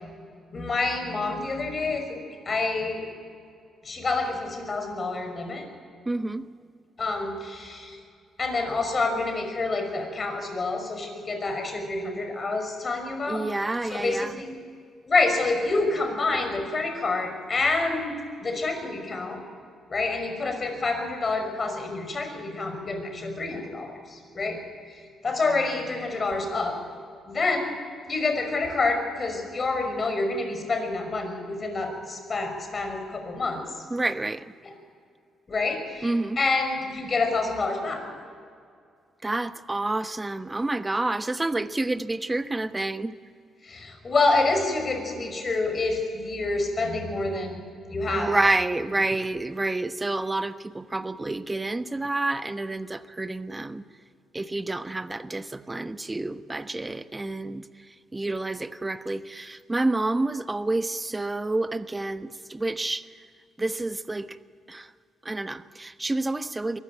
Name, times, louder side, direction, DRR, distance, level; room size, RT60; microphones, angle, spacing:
voice 1, 0.5-2.2 2.5-3.0 3.8-5.7 7.0-8.0 8.4-13.4 13.9-14.5 15.1-19.4 19.9-24.6 24.9-26.8 27.3-27.7 28.1-33.7 34.6-34.7 35.5-38.0 43.6-47.6 47.9-48.6, left 3 dB, 40° left, 5.7 m, -27 dB
voice 2, 6.1-6.5 13.3-14.4 33.9-34.5 36.0-36.4 39.2-43.1 48.1-53.8 54.3-63.1 63.6-64.4 64.7-64.9 65.2-66.8, right 2 dB, 20° right, 1.1 m, -29 dB
23.0 x 15.0 x 9.2 m
hypercardioid pair, 50°, 0 cm